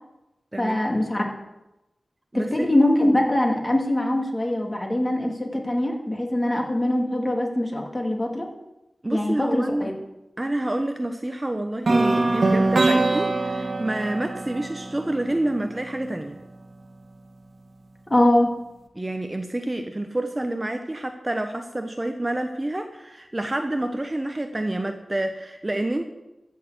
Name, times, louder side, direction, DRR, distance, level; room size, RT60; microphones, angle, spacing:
voice 1, 0.6-1.2 2.3-8.5 9.1-9.9 18.1-18.5, left 1 dB, 25° left, 1 dB, 2.5 m, -22 dB
voice 2, 2.3-2.7 9.0-9.9 10.4-16.4 18.9-26.1, right 1 dB, 20° right, 6 dB, 0.9 m, -28 dB
sound 1, 11.9-15.8, right 2 dB, 65° right, 1.5 m, -23 dB
14.0 x 6.6 x 8.0 m, 0.94 s
wide cardioid pair, 95°, 0 cm